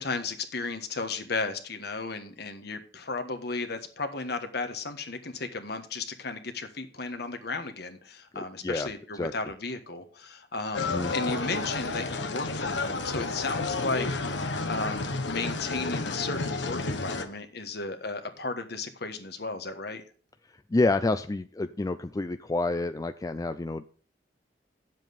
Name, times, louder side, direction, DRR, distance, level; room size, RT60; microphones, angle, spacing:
voice 1, 0.0-20.0, left 3 dB, 65° left, 8 dB, 1.4 m, -34 dB
voice 2, 8.3-8.9 9.2-9.3 10.9-11.1 20.7-23.8, left 2 dB, 20° left, 9 dB, 0.4 m, -28 dB
sound 1, 10.7-17.2, left 3 dB, 80° left, 1.2 m, -31 dB
9.7 x 7.6 x 5.3 m, 0.41 s
head